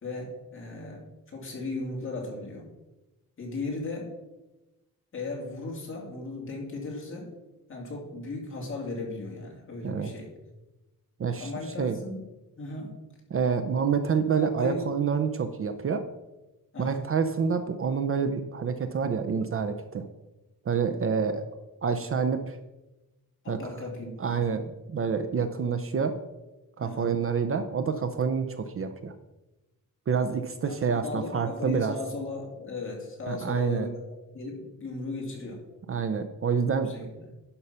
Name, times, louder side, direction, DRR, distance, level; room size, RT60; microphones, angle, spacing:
voice 1, 0.0-2.7 3.4-4.1 5.1-7.3 7.7-10.3 11.4-12.2 12.6-12.9 14.4-14.9 16.7-17.0 23.4-24.6 26.8-27.1 30.6-30.7 31.0-34.0 34.3-35.6 36.8-37.2, left 3 dB, 35° left, -2 dB, 2.7 m, -36 dB
voice 2, 11.2-11.5 11.8-12.0 13.3-16.0 16.8-20.0 20.7-21.4 21.8-22.6 23.5-23.6 24.2-26.1 26.8-29.1 30.1-31.9 33.3-33.9 35.9-36.9, right 6 dB, 40° right, 8 dB, 0.6 m, -27 dB
11.5 x 5.4 x 5.6 m, 1.1 s
wide cardioid pair, 175°, 34 cm